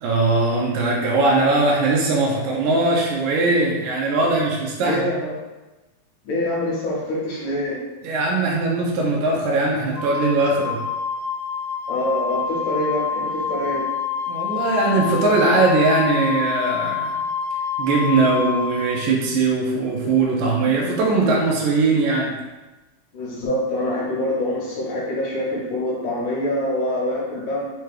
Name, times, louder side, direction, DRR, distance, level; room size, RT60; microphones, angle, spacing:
voice 1, 0.0-5.0 8.0-10.8 14.3-17.1 17.8-22.4, right 3 dB, 85° right, -2 dB, 1.7 m, -20 dB
voice 2, 4.8-5.3 6.2-7.8 11.9-13.9 23.1-27.7, left 1 dB, 70° left, -4 dB, 2.2 m, -25 dB
Wind instrument woodwind instrument, 9.9-18.9, left 6 dB, 90° left, 2.3 m, -27 dB
5.7 x 2.2 x 3.2 m, 1.1 s
omnidirectional pair, 4.0 m